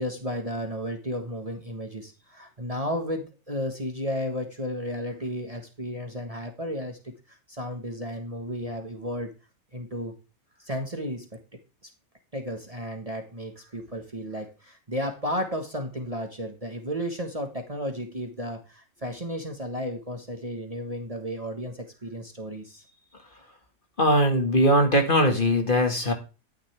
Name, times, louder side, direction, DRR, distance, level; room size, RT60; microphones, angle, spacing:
voice 1, 0.0-9.3 9.7-10.1 10.6-11.3 12.3-22.8, equal, 25° right, 4 dB, 1.5 m, -33 dB
voice 2, 24.0-26.1, equal, 35° left, 4 dB, 2.0 m, -20 dB
12.5 x 9.7 x 3.5 m, 0.31 s
omnidirectional pair, 1.5 m